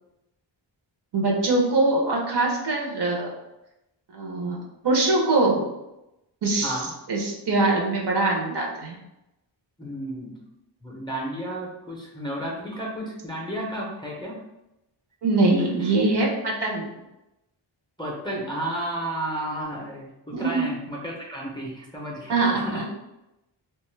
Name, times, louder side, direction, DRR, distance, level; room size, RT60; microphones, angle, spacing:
voice 1, 1.1-3.3 4.1-4.6 4.8-5.6 6.4-6.8 7.1-8.9 15.2-16.9 20.3-20.6 22.3-22.9, right 2 dB, 60° right, -1 dB, 0.7 m, -23 dB
voice 2, 9.8-10.4 10.8-14.4 15.8-15.9 18.0-22.8, right 1 dB, 10° left, -3 dB, 0.4 m, -32 dB
2.5 x 2.3 x 3.1 m, 0.92 s
wide cardioid pair, 125°, 47 cm